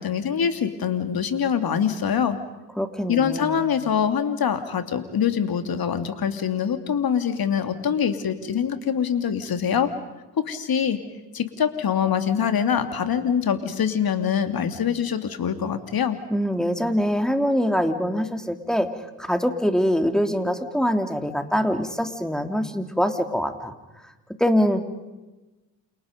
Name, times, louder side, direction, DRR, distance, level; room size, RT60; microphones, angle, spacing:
voice 1, 0.0-2.4 3.1-9.9 10.5-11.0 11.3-16.2, left 7 dB, 45° left, 8 dB, 2.9 m, -24 dB
voice 2, 2.8-3.6 16.3-18.9 19.2-23.7 24.4-24.8, equal, ahead, 6 dB, 3.3 m, -23 dB
29.5 x 28.5 x 5.3 m, 1.1 s
hypercardioid pair, 50°, 48 cm